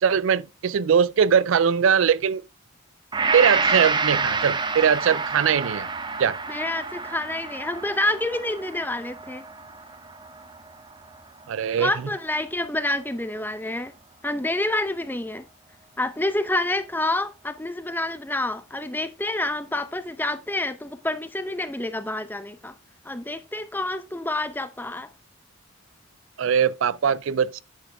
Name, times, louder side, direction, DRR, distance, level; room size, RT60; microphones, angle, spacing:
voice 1, 0.0-2.4 3.3-5.9 6.2-6.4 11.5-11.9 26.4-27.6, right 7 dB, 65° right, 0.4 m, -21 dB
Gong, 3.1-11.4 11.9-12.0, right 4 dB, 20° right, 0.8 m, -28 dB
voice 2, 6.5-9.4 11.8-13.9 14.2-15.4 16.0-22.7 23.0-25.1, left 2 dB, 10° left, 0.6 m, -28 dB
9.9 x 6.4 x 3.4 m
head